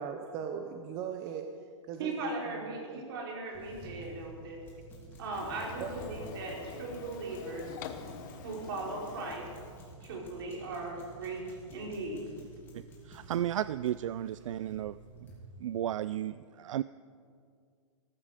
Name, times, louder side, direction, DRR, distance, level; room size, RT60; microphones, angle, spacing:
voice 1, 0.0-1.4 1.9-3.0 5.8-5.9, right 7 dB, 20° right, 5 dB, 0.7 m, -39 dB
voice 2, 2.0-4.6 5.2-7.7 8.4-9.4 10.0-12.2, right 3 dB, 50° right, -2 dB, 4.7 m, -38 dB
sound 1, 3.5-15.4, right 2 dB, 15° left, 3.0 m, -51 dB
Printer, 5.3-9.9, left 7 dB, 35° left, 1.1 m, -46 dB
voice 3, 12.7-15.0 15.6-16.8, right 11 dB, 75° right, 16 dB, 0.4 m, -34 dB
18.5 x 14.5 x 5.0 m, 2.2 s
hypercardioid pair, 165°, 16 cm